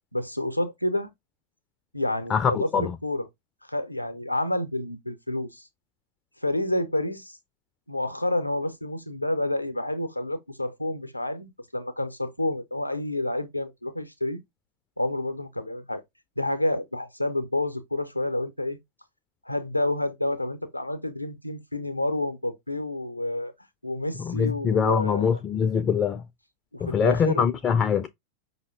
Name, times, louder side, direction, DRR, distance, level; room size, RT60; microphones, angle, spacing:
voice 1, 0.1-1.1 1.9-3.3 3.7-5.7 6.4-7.4 7.9-14.4 15.0-16.0 16.4-18.8 19.5-23.5 23.8-25.3 26.7-27.5, left 1 dB, 85° left, 0.6 m, -29 dB
voice 2, 2.3-3.0 24.2-26.2 26.8-28.1, left 7 dB, 25° left, 0.3 m, -23 dB
5.3 x 2.1 x 3.4 m
figure-of-eight pair, 90°, 0 cm